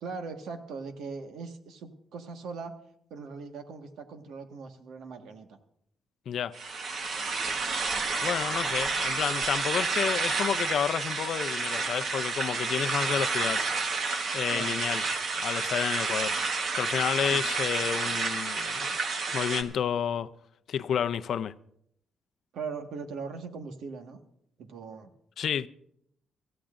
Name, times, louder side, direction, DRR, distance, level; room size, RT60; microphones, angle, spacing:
voice 1, 0.0-2.7 3.1-5.6 13.1-13.3 14.5-14.9 17.2-17.5 22.5-24.2 24.6-25.1, right 5 dB, 80° right, 1.6 m, -40 dB
sound 1, 6.5-19.6, right 4 dB, 50° right, 1.3 m, -30 dB
voice 2, 8.2-13.6 14.3-15.0 15.4-16.3 16.7-18.9 19.3-20.3 20.7-21.5 25.4-25.7, left 8 dB, 55° left, 0.5 m, -30 dB
26.0 x 15.0 x 2.6 m
cardioid pair, 165°, 0 cm